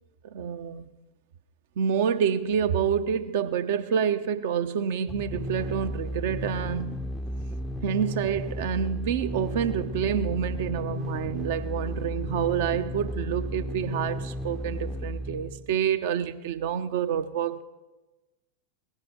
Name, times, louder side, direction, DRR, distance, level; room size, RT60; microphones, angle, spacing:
voice 1, 0.3-0.9 1.8-7.0 7.8-17.6, right 8 dB, 55° right, 0.8 m, -28 dB
sound 1, 5.1-15.8, left 1 dB, 5° left, 0.6 m, -34 dB
18.0 x 10.5 x 6.0 m
figure-of-eight pair, 90°, 0 cm